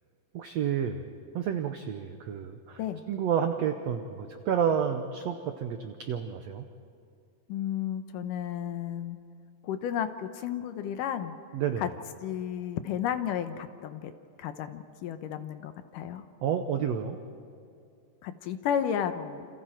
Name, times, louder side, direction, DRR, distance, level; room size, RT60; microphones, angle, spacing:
voice 1, 0.3-1.1 1.3-2.8 3.1-6.7 11.5-11.9 16.4-17.2, right 8 dB, 85° right, 7 dB, 1.5 m, -30 dB
voice 2, 7.5-9.2 9.6-11.4 11.8-11.9 12.2-14.1 14.4-16.3 18.2-19.5, left 9 dB, 75° left, 9 dB, 2.3 m, -33 dB
28.5 x 27.5 x 4.5 m, 2.4 s
omnidirectional pair, 4.1 m